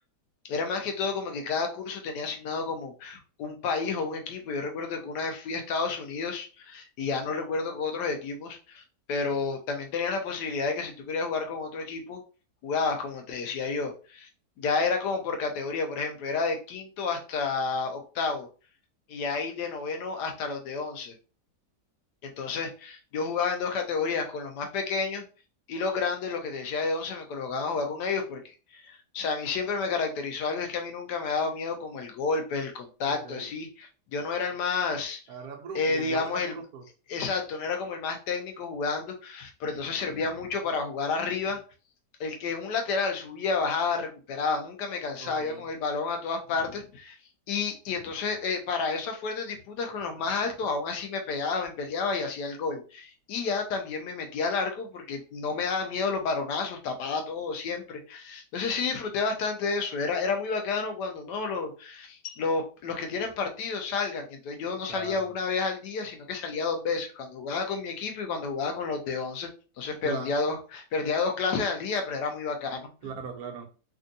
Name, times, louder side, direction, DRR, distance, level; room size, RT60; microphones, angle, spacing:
voice 1, 0.5-8.8 9.1-12.2 12.6-14.3 14.6-18.5 19.1-21.2 22.2-25.2 25.7-35.2 35.7-36.6 37.1-41.6 42.2-47.2 47.5-69.5 69.8-72.9, left 4 dB, 85° left, 4 dB, 1.3 m, -30 dB
voice 2, 33.0-33.5 35.3-36.8 45.2-45.7 64.9-65.3 70.0-70.3 73.0-73.7, right 6 dB, 70° right, 3 dB, 1.1 m, -40 dB
3.4 x 2.6 x 2.6 m, 0.35 s
omnidirectional pair, 1.8 m